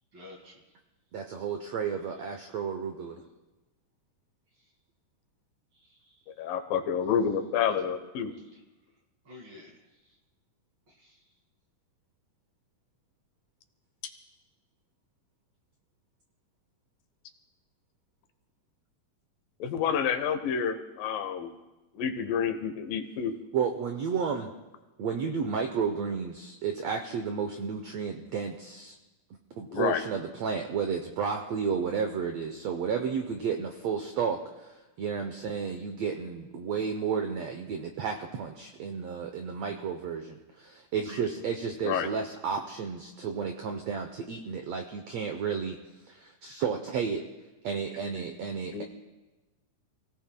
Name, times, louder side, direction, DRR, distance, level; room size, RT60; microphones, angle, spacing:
voice 1, 0.1-0.6 5.7-6.2 8.4-8.6 9.2-9.8 10.9-11.2, left 2 dB, 40° right, 0 dB, 2.4 m, -51 dB
voice 2, 1.1-3.2 23.5-24.5 25.0-28.9 29.6-45.8 46.1-47.2 47.6-48.8, right 6 dB, 75° right, 4 dB, 1.5 m, -32 dB
voice 3, 6.4-8.3 19.6-21.5 22.0-23.3 29.7-30.0 41.8-42.1 48.7-48.8, left 7 dB, 80° left, 8 dB, 2.6 m, -29 dB
29.0 x 17.0 x 2.2 m, 1.1 s
omnidirectional pair, 4.0 m